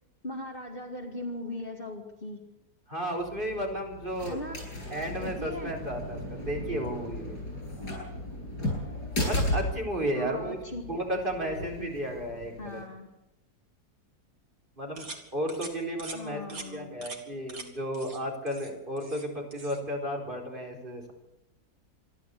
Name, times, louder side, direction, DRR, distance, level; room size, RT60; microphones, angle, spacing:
voice 1, 0.2-2.4 4.2-4.5 5.1-5.7 10.1-10.8 11.1-12.0 12.6-13.2 16.1-17.1, left 1 dB, 35° left, 2 dB, 2.4 m, -39 dB
voice 2, 2.9-4.4 4.9-7.4 9.2-10.6 10.9-12.8 14.8-16.4 16.7-21.1, equal, 30° right, 1 dB, 4.5 m, -33 dB
sound 1, 3.2-12.8, left 1 dB, 90° left, 8.4 m, -35 dB
sound 2, 15.0-15.2 15.5-15.7 16.0-16.2 16.5-16.7 17.0-17.2 17.5-17.7 17.9-18.2 18.5-19.3 19.5-19.8, right 3 dB, 60° right, 2.8 m, -42 dB
26.5 x 12.0 x 8.4 m, 0.88 s
omnidirectional pair, 1.7 m